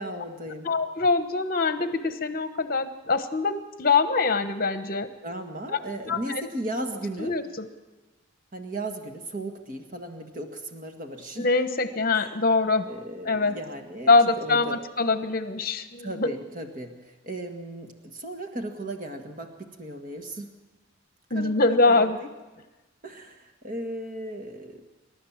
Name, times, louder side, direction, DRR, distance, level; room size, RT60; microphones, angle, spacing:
voice 1, 0.0-0.7 5.2-7.3 8.5-11.5 12.1-12.3 12.9-14.8 16.0-20.5 21.3-22.3 23.0-24.8, right 1 dB, 40° right, 5 dB, 1.7 m, -36 dB
voice 2, 0.6-5.1 6.1-6.4 7.2-7.7 11.4-12.8 13.3-13.5 14.1-16.3 21.3-22.2, left 3 dB, 45° left, 9 dB, 1.1 m, -23 dB
28.5 x 12.5 x 7.4 m, 1.1 s
head